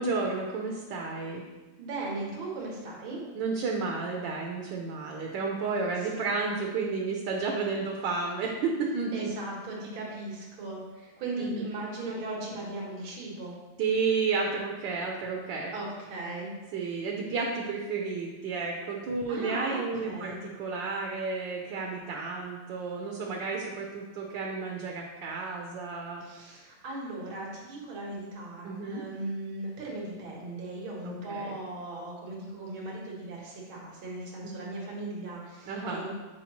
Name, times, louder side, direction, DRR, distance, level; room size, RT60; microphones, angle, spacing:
voice 1, 0.0-1.4 3.3-9.3 11.4-11.6 13.8-15.7 16.7-26.2 28.6-29.0 31.0-31.6 34.4-34.5 35.7-36.1, right 4 dB, 70° right, 0 dB, 1.4 m, -32 dB
voice 2, 1.8-3.2 6.0-6.1 9.1-13.5 15.7-16.5 19.3-20.4 26.2-36.1, right 2 dB, 85° right, -3 dB, 2.1 m, -38 dB
8.4 x 4.6 x 3.0 m, 1.2 s
omnidirectional pair, 2.2 m